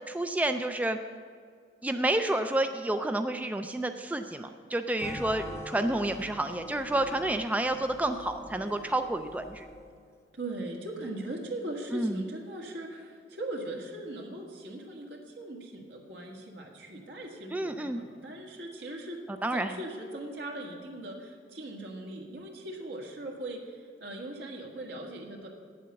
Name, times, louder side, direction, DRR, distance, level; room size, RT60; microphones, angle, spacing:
voice 1, 0.1-1.0 1.8-9.7 11.9-12.2 17.5-18.0 19.4-19.7, right 1 dB, 10° right, 7 dB, 0.3 m, -29 dB
sound 1, 5.0-10.1, left 1 dB, 15° left, 0.7 m, -44 dB
voice 2, 10.3-19.2 19.5-25.5, right 1 dB, 75° right, 0 dB, 1.7 m, -40 dB
9.1 x 7.6 x 6.9 m, 2.1 s
head